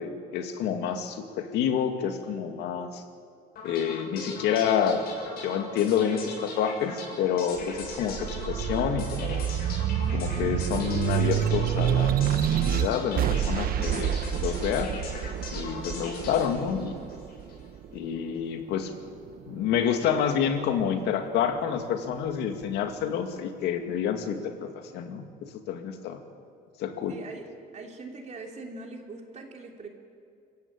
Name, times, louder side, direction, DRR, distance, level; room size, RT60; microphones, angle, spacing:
voice 1, 0.0-3.0 3.6-5.0 5.4-9.5 10.1-14.9 15.5-16.9 17.9-18.9 19.5-26.2 26.8-27.2, left 8 dB, 85° left, 6 dB, 2.3 m, -28 dB
sound 1, 3.6-17.6, left 3 dB, 65° left, 7.4 m, -40 dB
sound 2, 7.6-18.4 18.9-20.0, right 10 dB, 60° right, 1.0 m, -28 dB
voice 2, 27.1-27.5 27.7-29.9, right 3 dB, 40° right, 2 dB, 3.2 m, -42 dB
25.0 x 15.0 x 8.7 m, 2.4 s
cardioid pair, 110°, 17 cm